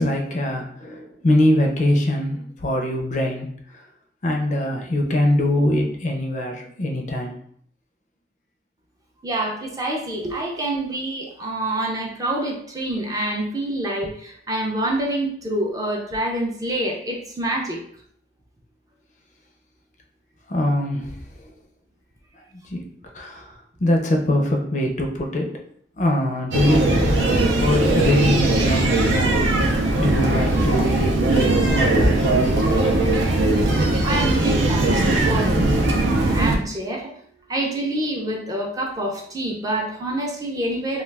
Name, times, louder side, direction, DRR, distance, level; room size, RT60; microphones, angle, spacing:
voice 1, 0.0-3.8 4.2-7.3 20.5-21.5 22.3-22.8 23.1-25.5 26.0-29.4 29.7-32.9, left 1 dB, 40° left, 2 dB, 0.4 m, -23 dB
voice 2, 9.2-17.8 34.0-35.9 36.3-37.1 37.5-41.0, right 1 dB, 20° right, -1 dB, 0.4 m, -26 dB
sound 1, 26.5-36.6, right 2 dB, 75° right, 0.5 m, -19 dB
2.3 x 2.2 x 3.2 m, 0.63 s
head